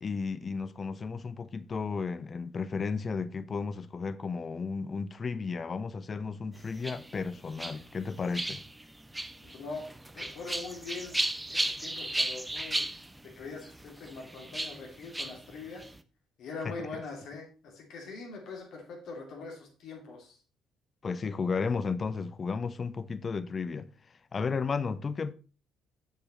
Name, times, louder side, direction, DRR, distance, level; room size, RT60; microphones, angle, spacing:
voice 1, 0.0-8.6 16.6-16.7 21.0-23.9 24.3-25.3, left 5 dB, 35° left, 0.6 m, -33 dB
sound 1, 6.5-16.0, right 1 dB, 10° right, 0.7 m, -36 dB
voice 2, 9.4-9.9 10.1-11.2 11.5-12.9 13.2-15.8 16.4-20.4, left 4 dB, 55° left, 2.7 m, -42 dB
7.3 x 6.9 x 4.2 m
figure-of-eight pair, 45°, 0 cm